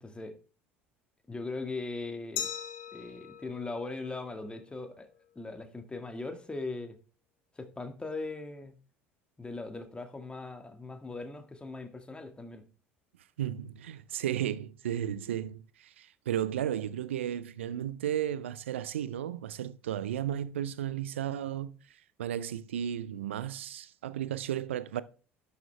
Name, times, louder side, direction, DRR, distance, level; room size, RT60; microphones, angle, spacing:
voice 1, 0.0-0.4 1.3-2.5 2.9-5.1 5.4-7.0 7.6-8.8 9.4-12.7, left 3 dB, 15° left, 1.9 m, -39 dB
Glass, 2.4-5.1, left 10 dB, 60° left, 1.4 m, -41 dB
voice 2, 13.4-21.8 22.2-25.0, right 10 dB, 75° right, 0.5 m, -34 dB
12.0 x 6.6 x 3.4 m
figure-of-eight pair, 65°, 7 cm